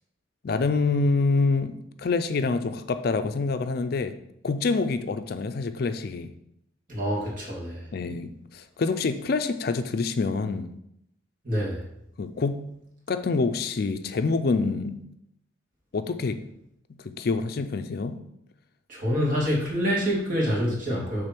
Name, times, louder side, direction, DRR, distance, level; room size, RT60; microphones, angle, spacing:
voice 1, 0.4-4.2 4.4-6.3 7.9-10.7 12.2-12.7 13.1-15.0 15.9-16.4 17.0-18.2, left 4 dB, 55° left, 9 dB, 0.4 m, -26 dB
voice 2, 6.9-7.8 11.4-11.8 18.9-21.3, equal, 45° right, -4 dB, 2.5 m, -26 dB
6.6 x 3.6 x 6.0 m, 0.77 s
head